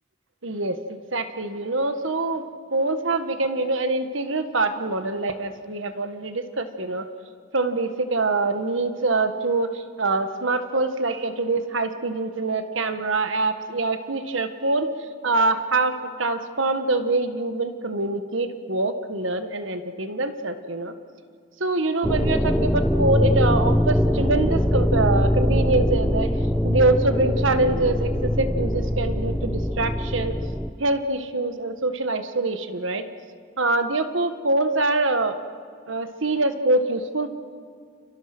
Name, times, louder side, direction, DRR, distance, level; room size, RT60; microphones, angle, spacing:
voice 1, 0.4-2.4 2.7-7.1 7.5-20.9 21.6-26.3 26.6-30.4 30.8-33.0 33.6-35.4 35.9-37.3, right 2 dB, 80° right, 8 dB, 1.7 m, -24 dB
sound 1, 22.0-30.7, equal, 5° left, 0.8 m, -22 dB
30.0 x 29.0 x 6.2 m, 2.1 s
head